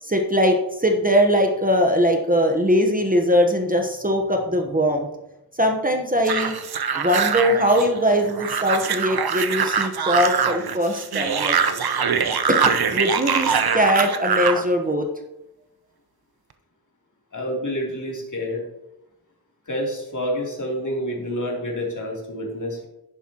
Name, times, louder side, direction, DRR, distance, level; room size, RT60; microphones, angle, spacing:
voice 1, 0.0-5.1 5.6-6.6 6.8-11.6 12.5-12.6 12.9-15.1, equal, 20° right, 3 dB, 1.1 m, -21 dB
sound 1, 6.3-14.6, right 6 dB, 70° right, 0.8 m, -23 dB
voice 2, 17.3-18.6 19.7-22.9, equal, 50° left, -2 dB, 3.2 m, -28 dB
10.5 x 10.0 x 3.0 m, 0.90 s
wide cardioid pair, 80°, 39 cm